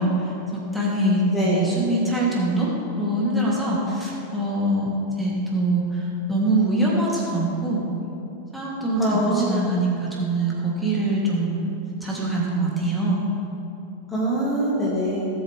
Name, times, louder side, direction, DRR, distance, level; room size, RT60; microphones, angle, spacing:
voice 1, 0.0-2.7 2.9-4.9 5.2-7.8 8.5-11.7 12.0-13.3, right 1 dB, ahead, -7 dB, 2.9 m, -24 dB
voice 2, 1.3-1.7 9.0-9.5 14.1-15.3, right 1 dB, 15° left, -7 dB, 2.2 m, -23 dB
18.5 x 7.8 x 3.5 m, 3.0 s
figure-of-eight pair, 90°, 0 cm